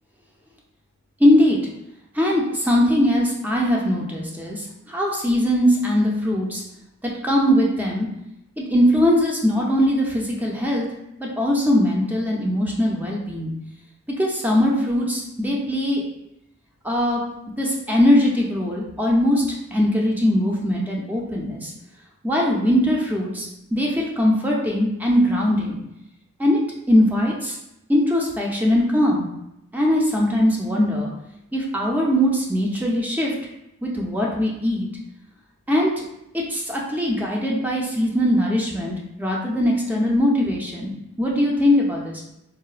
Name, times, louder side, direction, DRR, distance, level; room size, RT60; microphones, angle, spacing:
voice 1, 1.2-1.6 2.1-6.6 7.2-8.1 8.6-10.9 11.2-13.5 14.2-16.0 16.8-17.2 17.6-19.4 19.7-21.7 22.2-25.8 26.4-26.6 26.9-27.6 27.9-29.2 29.7-31.1 31.5-33.3 33.8-34.9 35.7-35.9 36.3-40.9 41.2-42.2, left 1 dB, 10° right, -3 dB, 0.4 m, -20 dB
3.8 x 2.0 x 2.4 m, 0.85 s
head